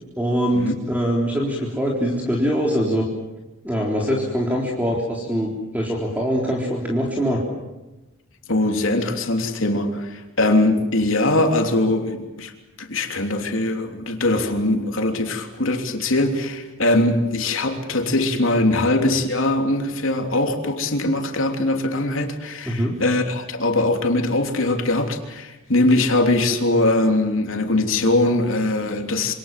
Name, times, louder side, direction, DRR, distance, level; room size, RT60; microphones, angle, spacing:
voice 1, 0.2-3.1 3.6-7.4 22.7-22.9, equal, 10° right, 3.9 m, -23 dB
voice 2, 8.5-12.5 12.8-29.3, left 2 dB, 70° left, 3.3 m, -21 dB
27.0 x 26.5 x 7.6 m
head